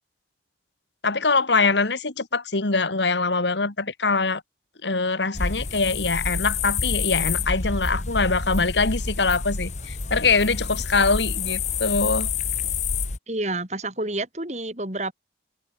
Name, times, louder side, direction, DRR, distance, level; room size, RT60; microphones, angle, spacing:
voice 1, 1.0-4.4 4.8-12.3, left 4 dB, 80° left, 2.0 m, -23 dB
sound 1, 5.3-13.2, left 5 dB, 40° left, 1.2 m, -28 dB
voice 2, 13.3-15.1, right 2 dB, 40° right, 4.8 m, -29 dB
head